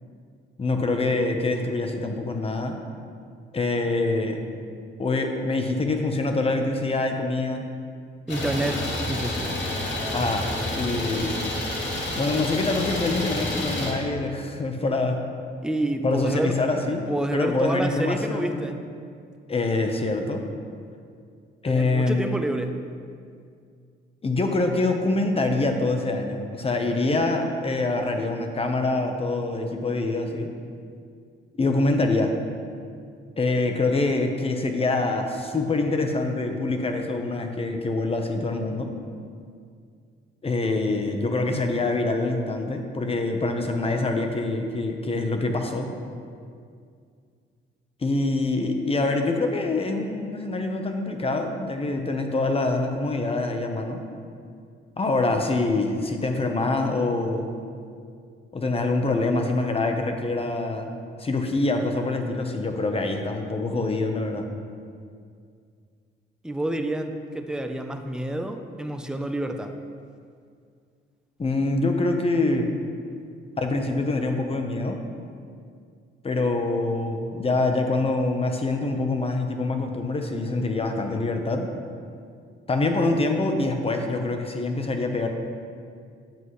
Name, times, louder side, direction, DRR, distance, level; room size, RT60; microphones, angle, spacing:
voice 1, 0.6-2.8 3.5-4.4 5.0-7.7 10.1-11.4 12.2-15.2 16.0-18.7 19.5-20.4 21.6-22.4 24.2-30.5 31.5-32.4 33.4-38.9 40.4-45.9 48.0-54.0 55.0-57.5 58.5-60.9 61.2-64.5 71.4-72.7 73.6-75.0 76.2-81.7 82.7-85.3, left 2 dB, 30° left, 4 dB, 1.0 m, -25 dB
Idling, 8.3-13.9, left 1 dB, 65° left, 2.3 m, -29 dB
voice 2, 8.3-8.8 9.1-9.6 15.6-16.6 17.1-18.8 21.7-22.8 66.4-69.7, right 1 dB, 5° right, 6 dB, 0.6 m, -28 dB
10.5 x 7.8 x 3.2 m, 2.2 s
cardioid pair, 90°, 20 cm